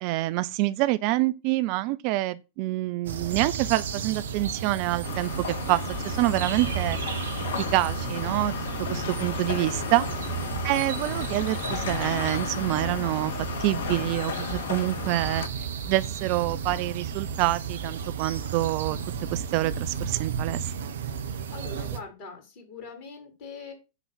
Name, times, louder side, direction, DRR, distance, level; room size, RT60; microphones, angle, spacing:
voice 1, 0.0-7.0 7.6-8.5 8.9-10.1 10.6-13.3 13.6-15.5 15.8-19.0 19.3-20.7, right 18 dB, 45° right, 0.5 m, -27 dB
sound 1, 3.1-22.0, right 7 dB, 65° right, 1.0 m, -33 dB
sound 2, 5.0-15.5, left 7 dB, 60° left, 0.9 m, -34 dB
voice 2, 21.5-23.7, left 4 dB, 45° left, 5.0 m, -42 dB
10.0 x 4.0 x 7.5 m
figure-of-eight pair, 90°, 0 cm